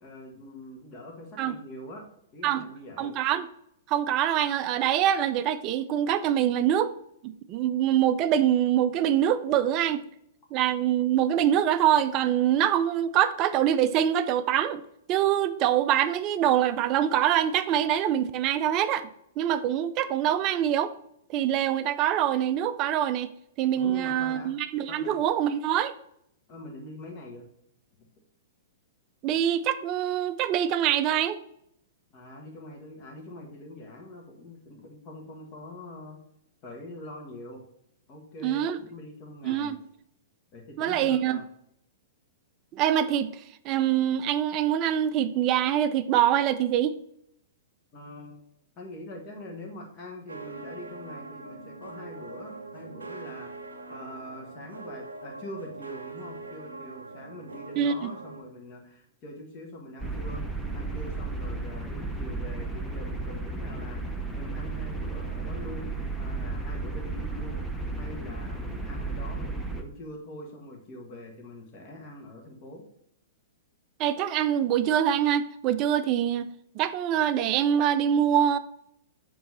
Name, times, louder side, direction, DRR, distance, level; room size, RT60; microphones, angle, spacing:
voice 1, 0.0-2.0 2.3-3.1 23.8-24.5 24.9-25.2 26.5-27.5 32.1-36.2 36.6-37.6 38.1-39.7 40.5-41.4 47.9-48.4 48.8-53.5 53.9-64.0 64.3-67.6 68.0-72.8, left 1 dB, 35° left, 0 dB, 1.6 m, -43 dB
voice 2, 3.0-3.5 3.9-6.9 7.2-10.0 10.5-14.8 15.1-19.1 19.4-20.9 21.3-23.3 23.6-25.9 29.2-31.4 38.4-38.8 39.4-39.8 40.8-41.4 42.7-46.9 57.8-58.1 74.0-76.4 76.8-78.6, right 10 dB, 35° right, 12 dB, 0.4 m, -24 dB
sound 1, 50.3-58.4, right 3 dB, 75° right, 0.7 m, -42 dB
sound 2, 60.0-69.8, right 3 dB, ahead, 0.7 m, -33 dB
7.7 x 3.1 x 4.1 m, 0.74 s
figure-of-eight pair, 110°, 0 cm